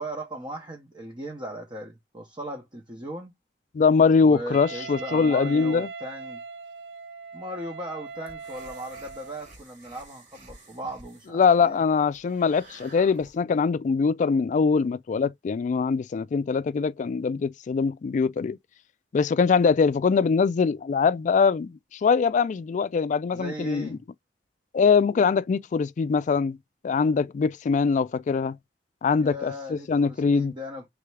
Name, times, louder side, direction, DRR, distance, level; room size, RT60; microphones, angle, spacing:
voice 1, 0.0-3.3 4.2-6.4 7.3-11.8 23.3-24.0 29.2-30.9, equal, 25° right, 0.8 m, -38 dB
voice 2, 3.7-5.9 11.3-18.6 19.1-23.9 24.7-26.6 26.8-28.6 29.0-30.5, left 5 dB, 45° left, 0.3 m, -22 dB
Wind instrument woodwind instrument, 4.5-9.5, right 5 dB, 75° right, 0.3 m, -39 dB
sound 1, 8.1-13.4, right 2 dB, 50° right, 1.8 m, -51 dB
3.5 x 3.3 x 3.3 m
head